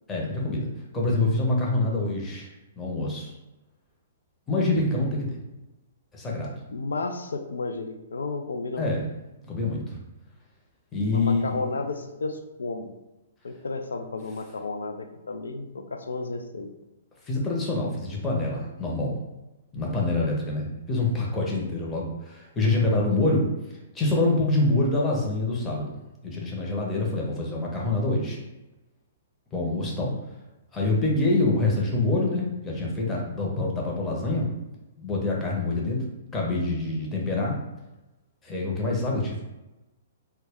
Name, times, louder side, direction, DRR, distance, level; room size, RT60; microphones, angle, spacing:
voice 1, 0.1-0.7 0.9-2.5 2.8-3.3 4.5-5.4 6.1-6.5 8.8-9.1 9.4-10.0 10.9-11.7 17.2-19.2 19.7-23.5 23.9-26.0 26.2-28.4 29.5-30.2 30.7-34.5 35.0-36.1 36.3-37.5 38.4-39.4, left 2 dB, 15° left, -3 dB, 0.7 m, -26 dB
voice 2, 6.7-8.9 11.1-12.9 13.4-16.7, left 3 dB, 70° left, 5 dB, 0.3 m, -32 dB
2.2 x 2.2 x 3.5 m, 1.0 s
figure-of-eight pair, 115°, 0 cm